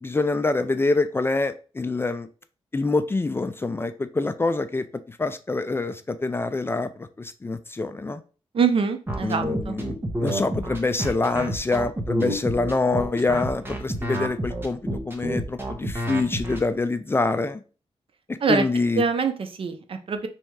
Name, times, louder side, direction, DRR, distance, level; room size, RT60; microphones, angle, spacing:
voice 1, 0.0-2.3 2.7-8.2 9.2-14.8 15.1-17.6 18.5-19.0, left 3 dB, 20° left, 10 dB, 0.3 m, -25 dB
voice 2, 8.5-9.8 18.4-18.6 19.0-20.3, right 5 dB, 55° right, 7 dB, 0.6 m, -24 dB
sound 1, 9.1-16.6, right 1 dB, 20° right, 1.0 m, -28 dB
3.3 x 2.7 x 4.6 m, 0.36 s
wide cardioid pair, 110°, 11 cm